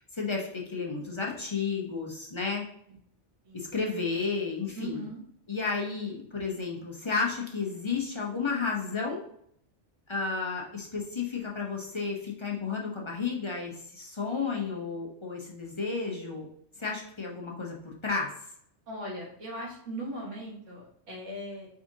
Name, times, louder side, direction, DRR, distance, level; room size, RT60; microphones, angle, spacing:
voice 1, 0.0-2.6 3.5-5.1 5.5-9.2 10.1-16.5 16.8-18.3, left 4 dB, 30° left, -2 dB, 0.6 m, -32 dB
voice 2, 4.8-5.2 18.9-21.7, equal, 85° right, -3 dB, 1.7 m, -39 dB
4.9 x 3.6 x 2.6 m, 0.69 s
omnidirectional pair, 1.2 m